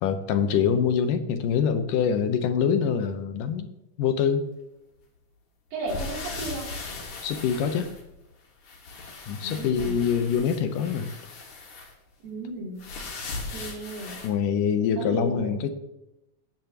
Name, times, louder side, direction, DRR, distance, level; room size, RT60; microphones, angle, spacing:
voice 1, 0.0-3.7 4.0-4.4 7.2-7.9 9.3-11.1 14.2-15.7, left 7 dB, 75° left, 8 dB, 2.4 m, -24 dB
voice 2, 5.7-6.7 9.4-10.0 12.2-12.8 13.5-14.2 15.0-15.6, right 2 dB, 85° right, -2 dB, 4.9 m, -34 dB
sound 1, 5.9-8.4 8.6-11.9 12.8-14.3, left 3 dB, 60° left, 3.3 m, -38 dB
18.0 x 8.9 x 3.0 m, 0.90 s
omnidirectional pair, 4.0 m